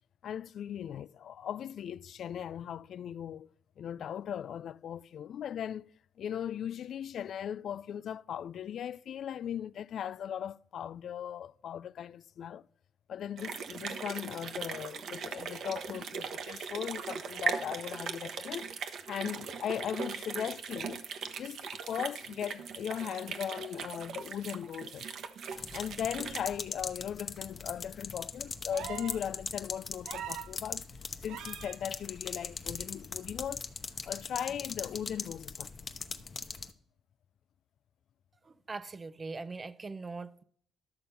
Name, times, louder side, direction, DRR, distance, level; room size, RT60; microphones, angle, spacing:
voice 1, 0.2-3.5 3.8-5.9 6.2-12.6 13.1-18.7 19.1-21.0 21.4-25.1 25.7-30.9 31.2-33.7 34.0-35.7, left 9 dB, 65° left, 0.3 m, -38 dB
sound 1, 13.4-26.4, right 6 dB, 65° right, 1.0 m, -39 dB
sound 2, 25.5-36.7, left 5 dB, 40° left, 0.8 m, -41 dB
sound 3, 28.7-29.2 30.0-30.5 31.3-31.8 33.2-33.3, right 11 dB, 85° right, 0.4 m, -42 dB
voice 2, 38.5-40.4, right 3 dB, 30° right, 0.6 m, -41 dB
11.5 x 6.7 x 5.6 m
cardioid pair, 90°, 0 cm